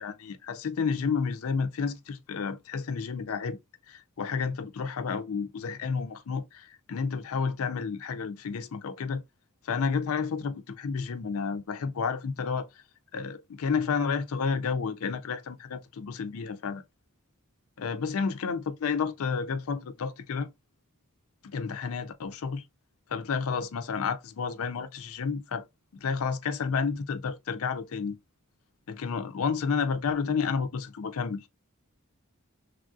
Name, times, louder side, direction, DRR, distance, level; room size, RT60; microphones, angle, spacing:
voice 1, 0.0-3.6 3.9-9.2 9.6-12.7 13.1-16.8 17.8-20.5 21.4-22.6 23.1-25.6 25.9-28.2 28.9-31.4, left 5 dB, 70° left, 0.5 m, -31 dB
3.3 x 2.4 x 2.5 m
head